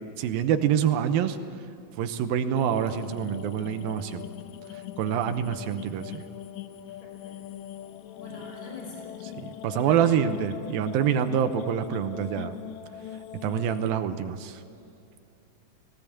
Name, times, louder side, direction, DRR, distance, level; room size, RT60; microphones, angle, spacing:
voice 1, 0.0-1.4 2.0-4.3 5.0-6.2 9.3-12.5 13.4-14.6, right 9 dB, 85° right, 9 dB, 2.7 m, -26 dB
sound 1, 2.5-13.9, left 10 dB, 80° left, 1.7 m, -41 dB
voice 2, 7.0-7.4 8.2-9.1 9.7-10.2 13.5-13.7, left 2 dB, 25° left, -2 dB, 5.7 m, -44 dB
18.5 x 18.5 x 8.6 m, 2.7 s
omnidirectional pair, 4.1 m